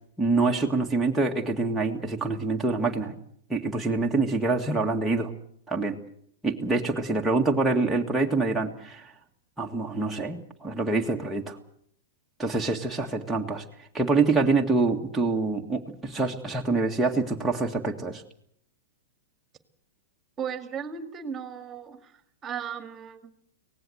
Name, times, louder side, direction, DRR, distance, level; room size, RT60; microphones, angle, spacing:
voice 1, 0.2-3.1 3.5-5.3 5.7-6.0 6.4-9.0 9.6-11.6 12.4-13.6 13.9-18.2, right 3 dB, 5° right, -2 dB, 1.9 m, -26 dB
voice 2, 20.4-22.1 22.4-23.3, right 7 dB, 25° right, 9 dB, 2.1 m, -35 dB
24.5 x 18.5 x 8.0 m, 0.66 s
hypercardioid pair, 105°, 0 cm